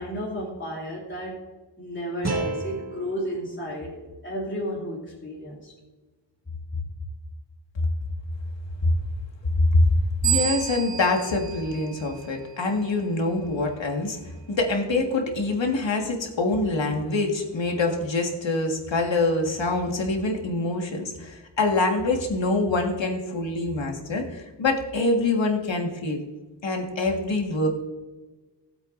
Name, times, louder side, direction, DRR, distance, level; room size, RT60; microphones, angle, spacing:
voice 1, 0.0-1.4 1.8-5.7 6.7-6.8, equal, 25° left, -5 dB, 2.8 m, -33 dB
sound 1, 2.2-5.3, right 2 dB, 35° right, 1.6 m, -34 dB
voice 2, 10.2-14.2 14.5-26.2 26.6-27.7, left 2 dB, 80° left, 2 dB, 1.8 m, -25 dB
sound 2, 10.2-12.7, right 11 dB, 75° right, 2.2 m, -30 dB
18.5 x 8.1 x 2.6 m, 1.2 s
wide cardioid pair, 105°, 44 cm